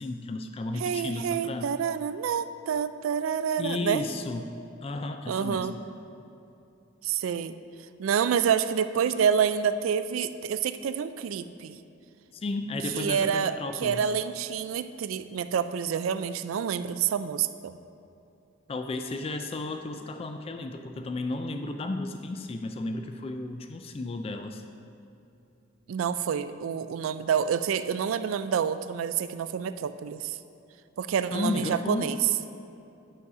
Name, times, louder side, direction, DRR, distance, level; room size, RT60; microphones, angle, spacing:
voice 1, 0.0-1.7 3.6-4.5 4.8-5.8 12.3-14.1 18.7-24.6 31.3-32.1, left 2 dB, 30° left, 6 dB, 0.3 m, -33 dB
voice 2, 0.8-4.0 5.3-5.8 7.0-7.5 8.0-11.8 12.9-17.8 25.9-30.4 31.0-32.2, right 7 dB, 85° right, 12 dB, 0.3 m, -28 dB
11.0 x 4.1 x 4.8 m, 2.9 s
head